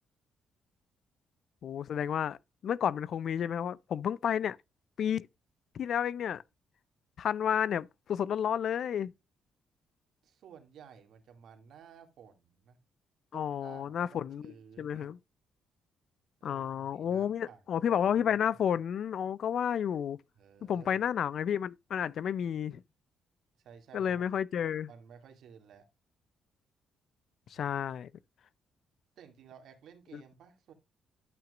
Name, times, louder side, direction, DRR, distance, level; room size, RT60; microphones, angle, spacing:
voice 1, 1.6-2.4 2.6-4.6 5.0-5.3 5.7-6.4 7.2-9.1 13.3-15.2 16.4-20.2 20.7-22.8 23.9-24.9 27.5-28.1 30.1-30.2, left 8 dB, 65° left, 0.4 m, -31 dB
voice 2, 10.2-12.8 13.3-15.1 16.4-18.6 20.4-21.1 23.6-24.2 24.9-25.9 27.5-27.8 29.2-30.7, right 7 dB, 75° right, 2.3 m, -54 dB
12.0 x 6.0 x 2.4 m
cardioid pair, 90°, 0 cm